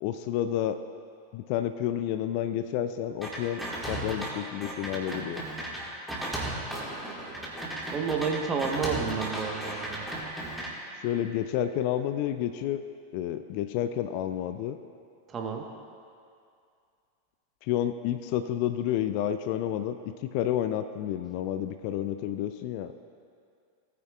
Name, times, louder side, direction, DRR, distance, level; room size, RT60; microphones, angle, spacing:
voice 1, 0.0-0.8 1.3-3.6 3.9-5.4 11.0-12.8 13.1-14.8 17.6-20.0 20.2-22.9, left 11 dB, 45° left, 10 dB, 0.4 m, -30 dB
sound 1, 3.2-4.3 4.6-10.7, right 1 dB, ahead, 1.8 m, -35 dB
voice 2, 7.9-10.0 15.3-15.6, right 5 dB, 25° right, 2 dB, 1.2 m, -30 dB
18.0 x 9.4 x 2.4 m, 2.4 s
figure-of-eight pair, 90°, 0 cm